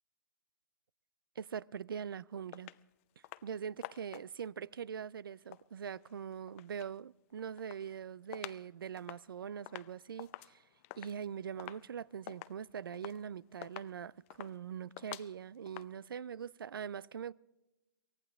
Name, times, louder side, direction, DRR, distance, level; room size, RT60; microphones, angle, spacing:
voice 1, 1.4-2.7 3.4-10.6 11.0-17.3, right 8 dB, 90° right, 0.5 m, -42 dB
sound 1, 2.5-2.8 3.2-3.5 3.8-4.5 5.3-7.0 7.3-8.7 9.0-15.9, left 19 dB, 40° left, 0.5 m, -50 dB
23.5 x 18.0 x 3.5 m
hypercardioid pair, 140°, 11 cm